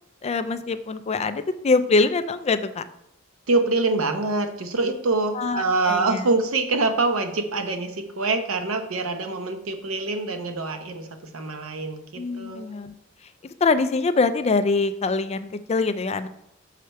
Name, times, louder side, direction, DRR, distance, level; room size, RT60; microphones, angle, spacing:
voice 1, 0.2-2.8 5.3-6.2 12.2-12.9 13.6-16.3, left 3 dB, 30° left, 11 dB, 0.4 m, -24 dB
voice 2, 3.5-12.7, right 3 dB, 85° right, 7 dB, 0.8 m, -25 dB
6.7 x 4.9 x 4.3 m, 0.80 s
head